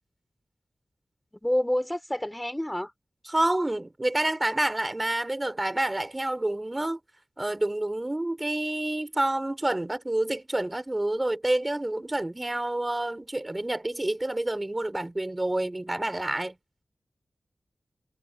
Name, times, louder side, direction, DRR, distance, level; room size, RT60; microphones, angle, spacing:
voice 1, 1.3-2.9, left 1 dB, 10° left, 4.2 m, -28 dB
voice 2, 3.3-7.0 7.4-16.6, right 1 dB, 20° right, 3.7 m, -28 dB
wide cardioid pair, 75°, 0 cm